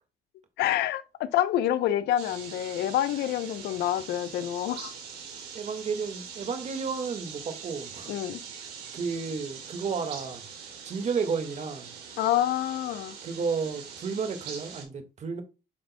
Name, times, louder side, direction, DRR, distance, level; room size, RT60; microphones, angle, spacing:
voice 1, 0.6-4.9 8.1-8.4 12.2-13.2, left 12 dB, 75° left, 0.8 m, -27 dB
sound 1, 2.2-14.8, right 6 dB, 75° right, 3.2 m, -43 dB
voice 2, 5.5-8.1 8.9-10.4 10.9-11.9 13.2-15.4, right 5 dB, 45° right, 1.8 m, -32 dB
8.6 x 5.2 x 2.2 m
cardioid pair, 110°, 17 cm